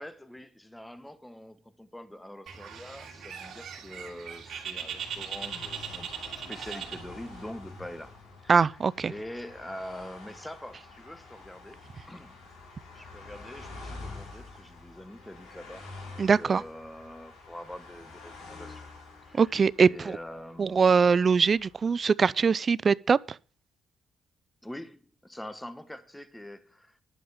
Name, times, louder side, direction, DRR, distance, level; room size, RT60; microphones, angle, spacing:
voice 1, 0.0-12.4 12.9-18.9 19.2-19.6 19.8-20.8 24.6-27.0, left 1 dB, 5° left, 1.2 m, -44 dB
Bird, 2.5-7.5, right 8 dB, 65° right, 2.9 m, -39 dB
sound 1, 4.8-22.0, left 3 dB, 75° left, 4.6 m, -48 dB
voice 2, 8.5-9.1 16.2-16.6 19.3-20.1 20.6-23.2, right 5 dB, 40° right, 0.4 m, -22 dB
11.0 x 5.4 x 7.2 m
cardioid pair, 90°, 0 cm